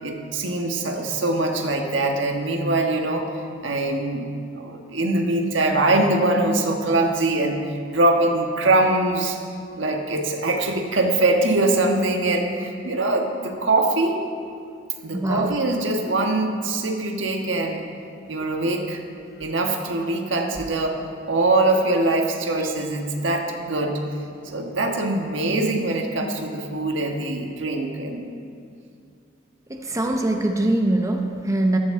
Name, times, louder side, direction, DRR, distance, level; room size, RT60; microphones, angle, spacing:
voice 1, 0.0-3.3 3.6-4.3 4.6-7.6 7.9-9.4 9.8-14.2 15.0-17.8 18.3-19.0 19.4-21.0 21.3-24.0 24.4-28.2, right 2 dB, 75° right, 3 dB, 1.4 m, -23 dB
voice 2, 15.1-15.6 18.4-18.5 29.7-31.8, right 1 dB, 15° right, 3 dB, 0.8 m, -23 dB
14.5 x 14.0 x 3.7 m, 2.4 s
head